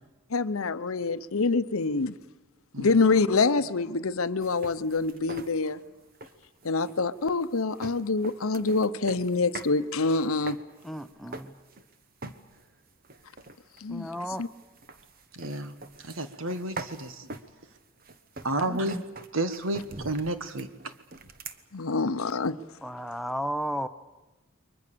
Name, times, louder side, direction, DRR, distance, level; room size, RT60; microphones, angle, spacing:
voice 1, 0.3-2.1 2.8-5.8 6.6-10.6 13.8-14.1 14.4-14.5 21.7-22.6, left 3 dB, 85° left, 14 dB, 0.8 m, -26 dB
sound 1, 4.4-9.8 10.1-11.9 12.2-12.7 13.0-21.6, right 3 dB, 45° right, 1.2 m, -44 dB
voice 2, 10.8-11.5 13.9-14.4 18.6-19.0 22.8-23.9, equal, ahead, 9 dB, 0.8 m, -33 dB
voice 3, 15.3-15.7 16.0-17.3 18.4-19.0 19.3-20.7, right 1 dB, 75° right, 10 dB, 1.5 m, -31 dB
29.5 x 23.0 x 6.9 m, 1.1 s
head